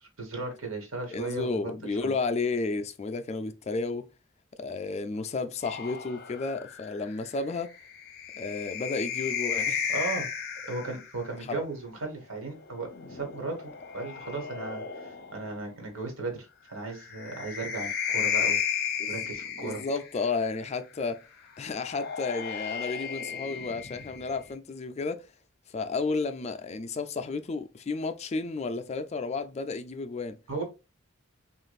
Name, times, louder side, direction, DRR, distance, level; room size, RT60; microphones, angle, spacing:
voice 1, 0.0-1.7 2.0-2.1 9.9-10.3 10.7-19.8 30.5-30.6, right 3 dB, 75° right, 1.3 m, -36 dB
voice 2, 1.1-4.1 4.6-7.7 8.4-9.9 11.4-11.6 18.4-18.6 19.0-19.2 19.6-21.2 21.6-25.3 25.7-30.4, left 3 dB, 30° left, 0.3 m, -32 dB
sound 1, 5.6-11.2 12.5-15.5 16.9-20.3 21.6-24.5, left 7 dB, 50° left, 0.8 m, -34 dB
6.3 x 2.5 x 2.3 m
head